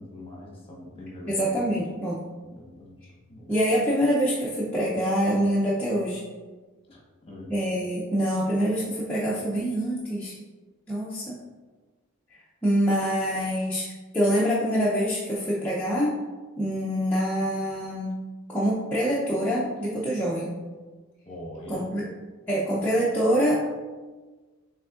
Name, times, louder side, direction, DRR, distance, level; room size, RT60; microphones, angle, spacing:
voice 1, 0.0-1.7 2.4-3.0 3.3-3.6 6.9-7.6 21.3-21.9, left 1 dB, 25° left, -3 dB, 1.1 m, -42 dB
voice 2, 1.3-2.2 3.5-6.2 7.5-10.3 10.9-11.4 12.6-13.9 14.1-16.2 16.6-18.1 18.5-20.5 21.7-22.0 22.5-23.6, equal, 10° left, -8 dB, 0.5 m, -25 dB
6.3 x 3.4 x 2.5 m, 1.3 s
head